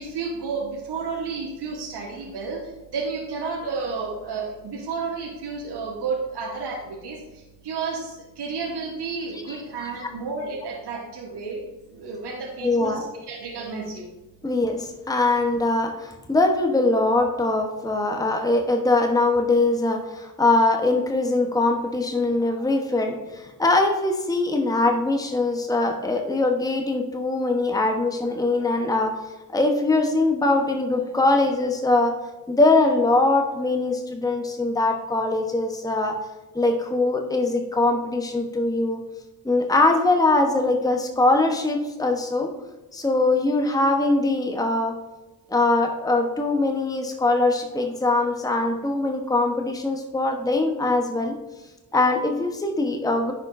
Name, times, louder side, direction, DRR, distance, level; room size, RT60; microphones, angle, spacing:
voice 1, 0.0-11.6 11.9-14.1, right 4 dB, 60° right, -1 dB, 1.3 m, -31 dB
voice 2, 12.6-13.0 14.4-29.1 29.5-32.1 32.5-36.1 36.5-39.0 39.4-42.5 42.9-44.9 45.5-51.3 51.9-53.3, left 2 dB, 10° left, 3 dB, 1.0 m, -22 dB
9.9 x 5.2 x 2.6 m, 1.1 s
hypercardioid pair, 45°, 45 cm